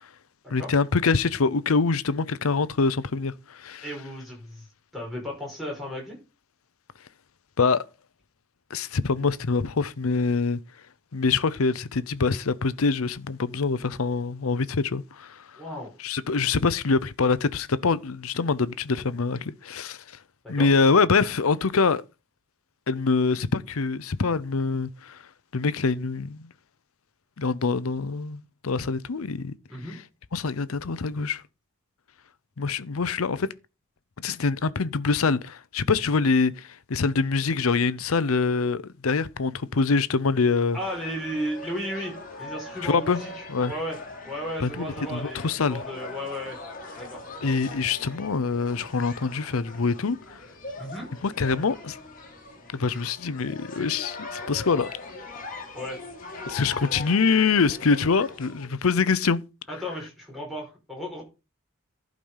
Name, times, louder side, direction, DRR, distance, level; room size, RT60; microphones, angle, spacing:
voice 1, 0.5-3.8 7.6-7.8 8.7-10.6 11.1-15.4 16.0-20.0 20.5-22.0 22.9-25.2 25.5-26.5 27.4-29.5 30.3-31.4 32.6-33.5 34.2-40.8 42.8-43.2 43.5-43.7 44.6-45.8 47.4-50.2 51.2-52.0 52.7-54.9 56.5-59.4, left 4 dB, 85° left, 0.7 m, -24 dB
voice 2, 3.8-4.7 4.9-6.2 15.6-15.9 20.4-20.8 29.7-30.0 40.7-42.1 42.4-44.0 44.2-46.6 47.0-47.2 50.8-51.1 55.7-56.0 56.6-57.0 59.7-61.2, equal, ahead, 5.2 m, -34 dB
sound 1, 40.8-58.7, left 2 dB, 40° left, 2.4 m, -41 dB
11.5 x 5.2 x 5.6 m
head